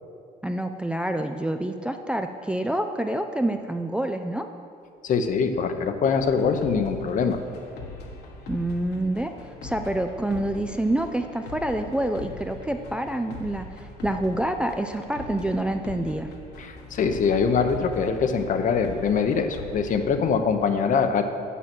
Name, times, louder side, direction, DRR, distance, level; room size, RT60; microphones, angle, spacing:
voice 1, 0.4-4.5 8.5-9.3 9.6-16.3, right 1 dB, 5° right, 6 dB, 0.4 m, -27 dB
voice 2, 5.0-7.4 16.6-21.2, left 5 dB, 50° left, 7 dB, 0.8 m, -23 dB
sound 1, 6.2-20.1, left 3 dB, 75° left, 1.4 m, -41 dB
7.4 x 7.1 x 6.1 m, 2.4 s
cardioid pair, 110°, 17 cm